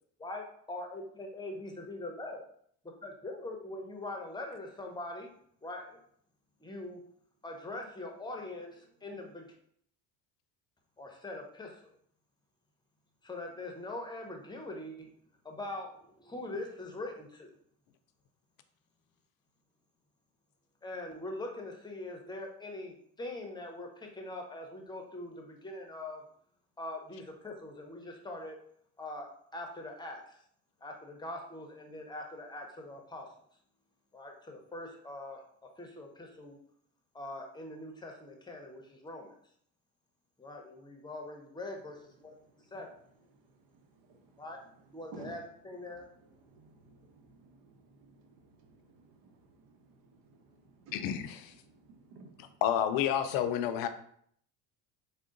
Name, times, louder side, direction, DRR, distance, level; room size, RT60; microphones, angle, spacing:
voice 1, 0.2-2.4 3.0-5.3 5.6-6.0 6.6-7.0 7.4-9.5 11.0-11.9 13.2-15.1 15.4-17.5 20.8-26.2 26.8-28.6 29.0-30.4 30.8-33.3 34.1-35.4 35.8-36.6 37.1-39.4 40.4-42.9 44.4-44.6 44.9-46.1, left 2 dB, 10° left, 2 dB, 0.7 m, -42 dB
voice 2, 43.3-44.4 45.1-45.4 46.2-51.2 51.6-52.6, right 3 dB, 80° right, 4 dB, 0.8 m, -55 dB
voice 3, 50.9-51.5 52.6-53.9, left 9 dB, 75° left, 9 dB, 0.5 m, -30 dB
3.6 x 2.1 x 3.7 m, 0.64 s
cardioid pair, 105°, 35 cm